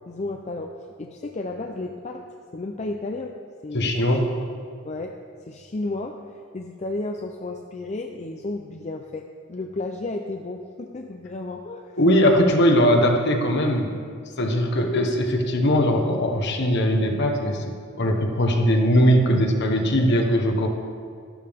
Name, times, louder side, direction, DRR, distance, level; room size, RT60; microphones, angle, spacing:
voice 1, 0.1-2.3 2.5-3.3 3.6-4.2 4.8-5.1 5.5-6.2 6.5-11.9, left 2 dB, 35° left, 3 dB, 0.5 m, -33 dB
voice 2, 3.7-4.2 12.0-13.9 14.4-17.6 18.0-20.7, equal, 60° left, 3 dB, 1.3 m, -20 dB
12.5 x 12.0 x 3.6 m, 2.1 s
head